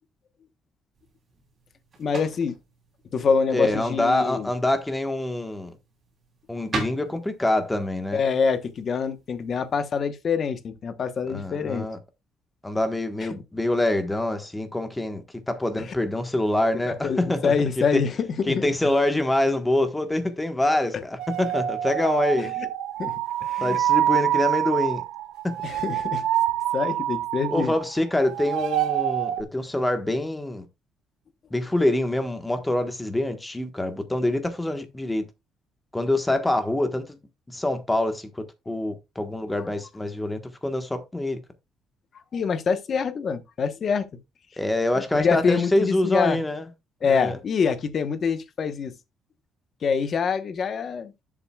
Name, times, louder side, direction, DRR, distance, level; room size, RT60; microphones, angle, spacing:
sound 1, 0.9-10.1, right 3 dB, 30° right, 3.2 m, -41 dB
voice 1, 2.0-2.5 3.1-4.5 8.1-11.9 13.2-13.3 16.9-18.7 22.4-22.7 23.0-23.1 23.4-23.8 25.6-26.2 26.7-27.7 42.3-44.0 45.1-46.4 47.0-48.9 49.8-51.1, left 5 dB, 35° left, 1.0 m, -25 dB
voice 2, 3.5-5.7 6.5-8.2 11.3-12.0 12.6-17.5 17.9-18.0 18.5-22.5 23.6-25.0 25.4-25.5 27.5-30.6 31.5-35.3 35.9-37.2 37.5-41.4 44.6-46.7 47.1-47.4, left 1 dB, 10° left, 1.3 m, -25 dB
sound 2, 21.2-28.0 28.2-29.4, right 12 dB, 80° right, 1.0 m, -26 dB
12.5 x 7.4 x 2.3 m
cardioid pair, 175°, 0 cm